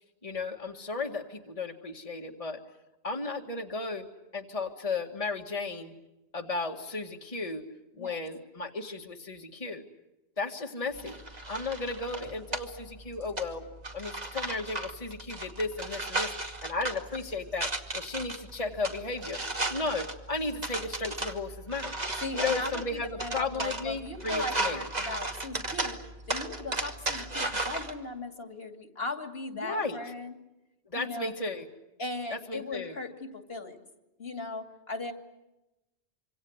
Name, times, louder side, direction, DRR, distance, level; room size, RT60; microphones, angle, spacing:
voice 1, 0.2-2.6 3.0-4.1 4.3-5.9 6.3-7.6 8.0-9.8 10.4-11.2 11.5-13.7 13.9-16.3 16.6-19.4 19.7-22.0 22.3-24.8 29.5-30.0 30.9-31.7 32.3-32.9, left 3 dB, 35° left, 2 dB, 2.0 m, -34 dB
sound 1, 10.9-27.9, right 2 dB, 40° right, 2.4 m, -36 dB
voice 2, 22.2-26.0 26.3-30.3 30.9-31.4 32.0-33.8 34.2-35.1, left 2 dB, 65° left, 6 dB, 3.0 m, -38 dB
26.5 x 26.0 x 8.0 m, 0.98 s
omnidirectional pair, 1.1 m